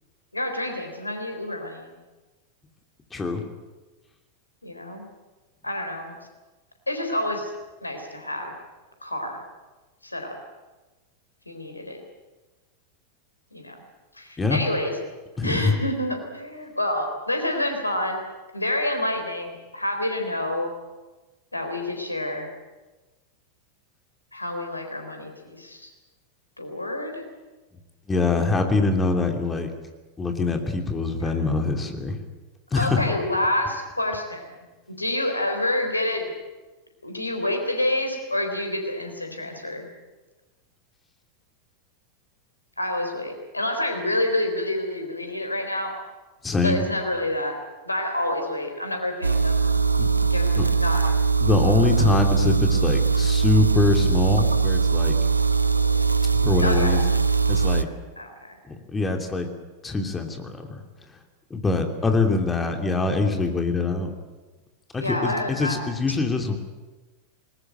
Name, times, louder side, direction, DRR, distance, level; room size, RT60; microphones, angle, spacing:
voice 1, 0.3-2.0 4.6-5.0 5.6-6.2 6.9-7.5 7.8-8.5 9.0-9.4 10.0-10.4 11.5-12.0 13.5-13.8 14.1-14.9 15.4-18.2 18.5-20.7 21.5-22.5 24.3-25.9 26.6-27.2 32.7-34.6 35.0-36.3 37.0-39.9 42.8-45.9 46.6-47.6 47.8-49.7 50.3-51.2 56.6-57.0 58.2-58.6 65.0-65.8, left 1 dB, 85° left, 4 dB, 3.9 m, -28 dB
voice 2, 3.1-3.4 14.4-14.6 15.4-15.7 28.1-29.7 30.2-32.2 32.7-33.0 46.4-46.8 50.0-50.1 50.6-50.7 51.4-55.2 56.4-57.0 57.5-57.9 58.7-59.5 59.8-60.8 61.5-64.1 64.9-66.6, left 3 dB, 15° left, 4 dB, 2.9 m, -24 dB
sound 1, 49.2-57.8, right 5 dB, 80° right, 0.7 m, -21 dB
20.0 x 20.0 x 9.2 m, 1.2 s
figure-of-eight pair, 90°, 0 cm